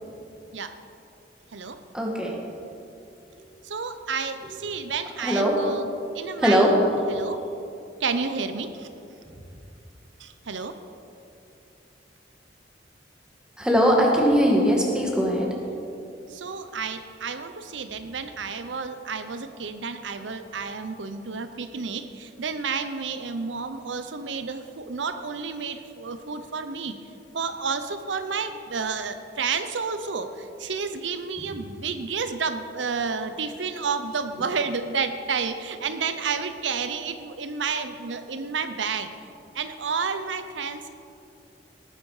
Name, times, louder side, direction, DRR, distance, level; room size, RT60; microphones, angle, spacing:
voice 1, 1.9-2.4 5.2-5.6 6.4-6.7 13.6-15.5, equal, 5° right, -1 dB, 1.8 m, -20 dB
voice 2, 3.6-6.7 7.1-7.4 8.0-8.9 10.2-10.7 16.3-27.0 27.3-39.1 39.5-40.9, right 5 dB, 90° right, 9 dB, 0.7 m, -30 dB
18.0 x 9.8 x 4.9 m, 2.7 s
head